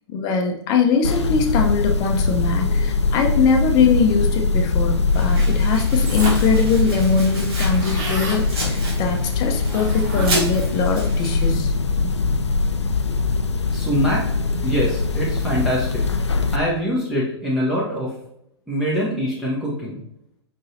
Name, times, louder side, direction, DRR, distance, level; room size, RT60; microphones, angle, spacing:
voice 1, 0.1-11.7 12.0-12.1, left 5 dB, 30° left, 4 dB, 0.7 m, -21 dB
sound 1, 1.0-16.6, left 4 dB, 80° left, 0.4 m, -22 dB
Domestic sounds home sounds, 5.1-11.5, right 1 dB, 60° right, 1.6 m, -33 dB
sound 2, 6.0-6.6 7.0-7.1 7.3-8.4 9.6-10.7, right 2 dB, 40° right, 1.8 m, -29 dB
voice 2, 13.7-14.2 14.6-16.1 16.5-18.1 18.7-20.0, equal, ahead, -7 dB, 0.8 m, -23 dB
5.2 x 3.9 x 2.6 m, 0.78 s
figure-of-eight pair, 110°, 15 cm